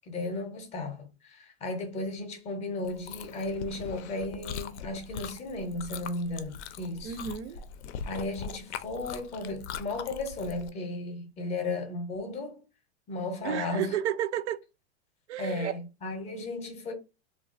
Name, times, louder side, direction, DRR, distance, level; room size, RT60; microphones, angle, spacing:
voice 1, 0.1-7.2 8.0-12.6 13.1-14.0 15.4-16.9, left 2 dB, 20° left, 0.5 m, -35 dB
Chewing mastication, 2.8-10.7, left 7 dB, 80° left, 0.5 m, -41 dB
voice 2, 7.0-7.6 13.4-14.6 15.3-15.7, right 10 dB, 80° right, 0.5 m, -32 dB
3.0 x 2.3 x 2.4 m
hypercardioid pair, 135°, 33 cm